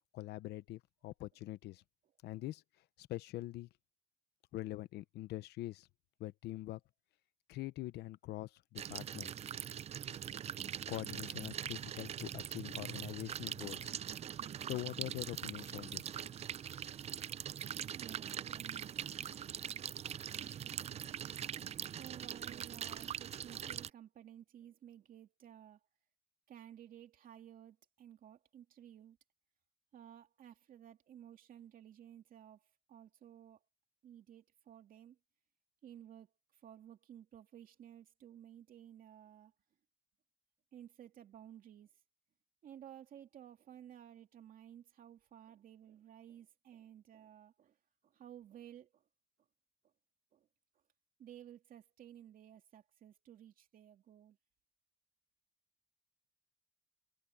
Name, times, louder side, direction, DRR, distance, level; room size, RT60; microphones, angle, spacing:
voice 1, 0.1-1.8 2.2-2.6 3.0-3.7 4.5-5.9 6.2-6.8 7.5-9.3 10.9-14.0 14.6-16.1, left 16 dB, 80° left, 0.9 m, -44 dB
sound 1, 8.8-23.9, right 9 dB, 40° right, 0.5 m, -42 dB
voice 2, 17.7-19.0 21.4-25.8 26.5-29.2 29.9-33.6 34.0-35.2 35.8-39.5 40.7-41.9 42.6-47.8 48.0-49.0 50.3-50.5 51.2-54.4, right 10 dB, 55° right, 2.6 m, -56 dB
cardioid pair, 110°, 17 cm